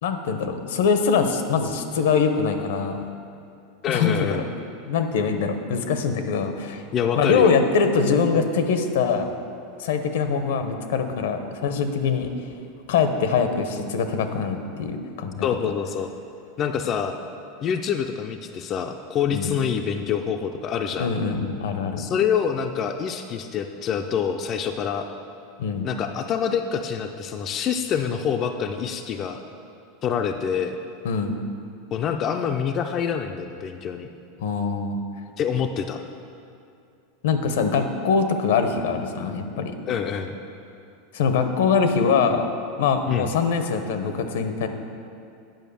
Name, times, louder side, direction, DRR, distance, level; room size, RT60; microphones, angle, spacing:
voice 1, 0.0-3.0 3.9-4.4 4.9-6.8 7.2-9.3 9.8-12.3 12.9-15.5 19.3-19.5 21.0-22.0 25.6-25.9 31.0-31.3 34.4-35.0 37.2-39.7 41.1-42.5 42.8-44.7, left 5 dB, 80° left, 7 dB, 0.8 m, -23 dB
voice 2, 3.8-4.5 6.9-7.6 15.4-16.1 16.6-17.2 17.6-21.1 22.0-25.1 25.8-29.4 30.0-30.8 31.9-34.1 35.4-36.0 39.9-40.4 43.1-43.3, left 7 dB, 30° left, 5 dB, 0.4 m, -26 dB
9.1 x 5.4 x 6.8 m, 2.5 s
supercardioid pair, 160°, 0 cm